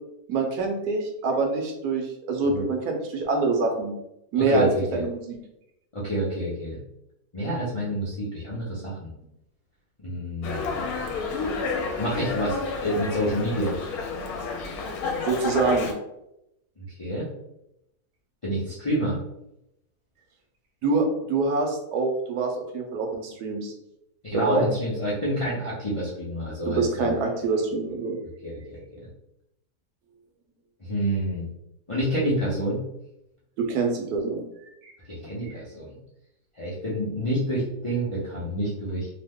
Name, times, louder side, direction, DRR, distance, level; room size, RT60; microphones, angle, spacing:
voice 1, 0.3-3.9 4.3-5.4 15.2-15.9 20.8-23.7 24.3-24.7 26.7-28.2 33.6-34.4 34.8-34.9 35.4-35.5, right 3 dB, 75° right, 2 dB, 1.1 m, -25 dB
voice 2, 4.4-5.0 5.9-6.8 7.3-9.1 10.0-11.0 12.0-13.8 17.0-17.3 18.4-19.2 24.2-27.2 28.4-29.1 30.8-31.5 31.9-32.8 35.1-36.0 36.6-39.1, equal, 55° left, -8 dB, 0.3 m, -28 dB
Dog, 10.4-15.9, left 4 dB, 75° left, 1.0 m, -30 dB
2.9 x 2.1 x 3.4 m, 0.84 s
omnidirectional pair, 1.7 m